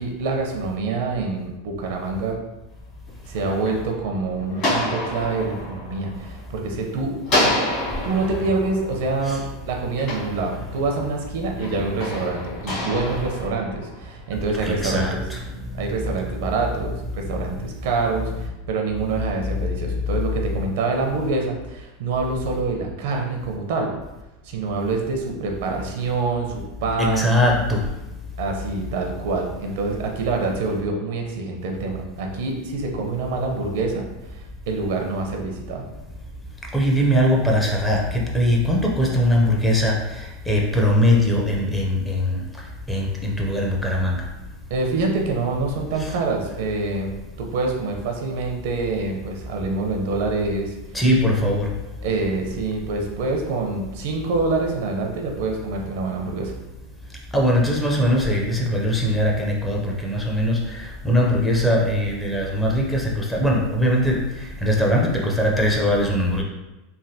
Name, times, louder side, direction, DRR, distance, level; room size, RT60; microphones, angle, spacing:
voice 1, 0.0-2.4 3.3-7.2 7.4-7.5 8.0-15.2 15.7-23.9 24.4-27.6 28.4-34.0 34.3-35.9 44.7-50.8 52.0-56.5, right 3 dB, 70° right, 2 dB, 0.5 m, -26 dB
sound 1, 3.1-6.8 7.2-11.0 11.6-14.3, left 1 dB, 40° left, 1.4 m, -28 dB
voice 2, 14.6-15.4 15.8-15.9 27.0-27.8 36.7-39.9 40.5-42.4 42.9-44.2 46.0-46.1 50.9-51.7 57.3-64.2 64.6-66.4, equal, 5° left, -1 dB, 0.5 m, -21 dB
3.3 x 2.2 x 2.7 m, 1.0 s
supercardioid pair, 135°, 0 cm